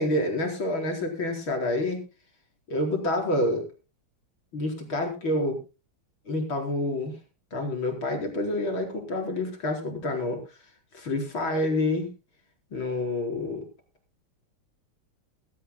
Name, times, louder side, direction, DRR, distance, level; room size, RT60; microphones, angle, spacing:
voice 1, 0.0-2.0 2.7-3.7 4.5-5.6 6.3-7.2 7.5-10.4 10.9-12.1 12.7-13.6, left 1 dB, 70° left, 3 dB, 5.2 m, -28 dB
21.5 x 14.5 x 2.2 m, 0.30 s
omnidirectional pair, 2.3 m